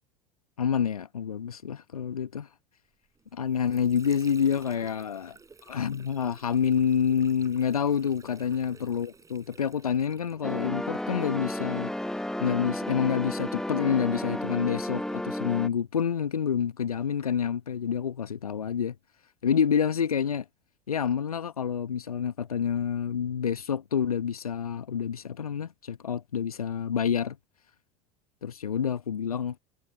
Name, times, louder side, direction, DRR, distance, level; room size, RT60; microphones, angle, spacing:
voice 1, 0.6-2.5 3.3-5.4 5.6-11.9 12.4-18.9 19.4-20.4 20.9-27.4 28.4-29.6, left 7 dB, 80° left, 1.0 m, -28 dB
Water / Sink (filling or washing), 3.1-10.8, right 4 dB, 15° right, 4.5 m, -54 dB
sound 1, 10.4-15.7, left 1 dB, 5° left, 1.1 m, -32 dB
figure-of-eight pair, 75°, 19 cm